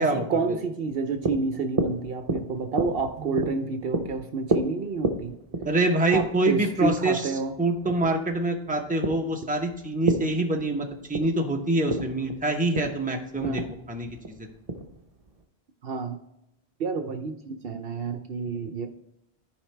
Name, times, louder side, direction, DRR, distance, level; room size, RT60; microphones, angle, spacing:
voice 1, 0.0-5.3 6.1-7.6 13.4-13.7 15.8-16.2 16.8-18.9, right 4 dB, 65° right, 7 dB, 0.8 m, -29 dB
sound 1, 0.9-15.4, right 2 dB, 35° right, 0.9 m, -32 dB
voice 2, 5.6-7.3 7.6-13.6 13.9-14.1 14.4-14.5, right 2 dB, 10° right, 2 dB, 0.9 m, -25 dB
13.5 x 5.0 x 3.3 m, 0.86 s
omnidirectional pair, 1.1 m